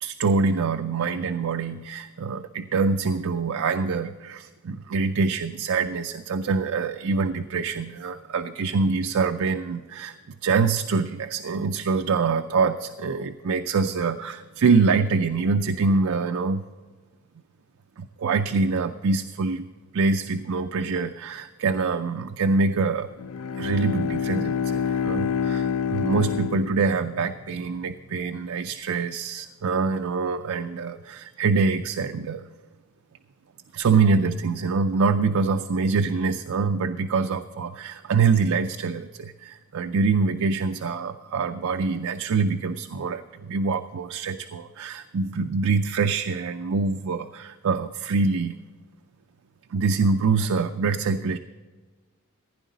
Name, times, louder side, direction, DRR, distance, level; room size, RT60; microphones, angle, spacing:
voice 1, 0.0-10.1 10.4-16.6 18.0-19.7 19.9-23.1 23.6-32.5 33.7-48.6 49.7-51.4, right 4 dB, 70° right, 8 dB, 0.5 m, -25 dB
Bowed string instrument, 23.1-27.5, left 7 dB, 70° left, 0.4 m, -27 dB
15.5 x 10.0 x 4.0 m, 1.4 s
head